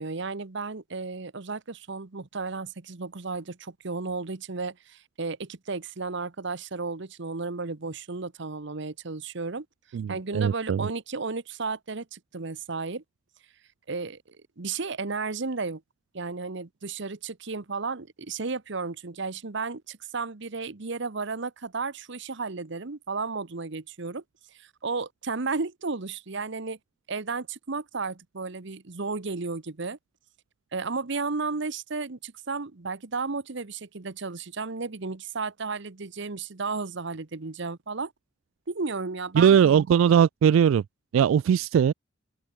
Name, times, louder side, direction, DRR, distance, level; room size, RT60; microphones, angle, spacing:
voice 1, 0.0-9.7 10.1-13.0 13.9-15.8 16.1-24.2 24.6-26.8 27.1-30.0 30.7-38.1 38.7-39.6, right 4 dB, 65° right, 1.1 m, -33 dB
voice 2, 9.9-10.8 39.4-40.8 41.1-41.9, right 8 dB, 90° right, 0.3 m, -20 dB
open air
head